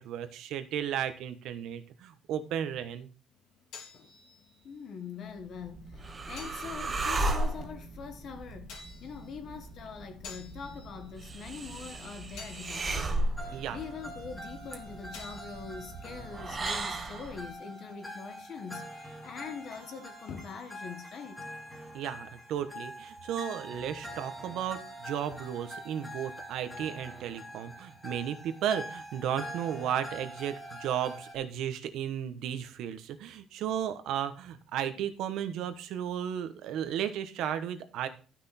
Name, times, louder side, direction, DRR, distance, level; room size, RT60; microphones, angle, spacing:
voice 1, 0.0-3.1 13.5-13.8 21.9-38.1, right 9 dB, 65° right, 1.1 m, -34 dB
sound 1, 3.3-18.8, left 5 dB, 70° left, 3.3 m, -54 dB
voice 2, 4.6-8.7 9.0-13.3 13.7-21.4, left 6 dB, 40° left, 1.4 m, -43 dB
sound 2, 5.4-17.5, right 2 dB, 20° right, 1.0 m, -36 dB
sound 3, 13.4-31.3, equal, 5° left, 2.1 m, -45 dB
12.0 x 6.1 x 4.3 m
cardioid pair, 180°, 0 cm